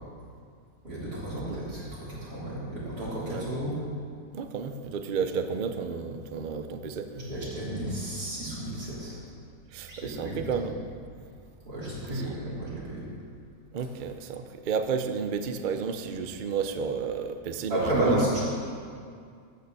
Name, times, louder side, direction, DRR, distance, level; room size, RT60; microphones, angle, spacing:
voice 1, 0.8-3.8 7.1-9.2 9.9-10.7 11.7-13.1 17.7-18.4, right 1 dB, 85° right, -8 dB, 4.0 m, -32 dB
voice 2, 4.3-7.2 9.7-10.7 11.2-11.3 12.1-12.4 13.7-18.2, right 6 dB, 55° right, 8 dB, 0.5 m, -32 dB
13.0 x 6.7 x 6.9 m, 2.3 s
omnidirectional pair, 1.6 m